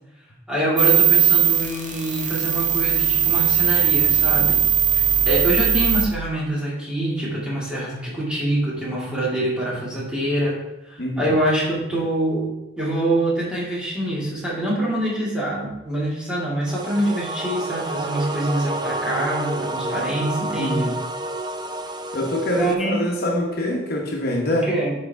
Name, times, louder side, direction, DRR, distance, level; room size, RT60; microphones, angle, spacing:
voice 1, 0.5-4.6 4.9-10.6 10.9-12.5 12.8-20.8 22.5-23.0 24.5-24.9, right 1 dB, 5° right, -7 dB, 2.4 m, -25 dB
sound 1, 0.8-6.0, right 9 dB, 40° right, 1.2 m, -19 dB
voice 2, 11.0-11.3 20.6-21.0 22.1-24.7, left 1 dB, 55° left, -1 dB, 1.2 m, -24 dB
sound 2, 16.7-22.7, right 2 dB, 20° right, 0.5 m, -29 dB
10.5 x 4.9 x 3.5 m, 0.93 s
head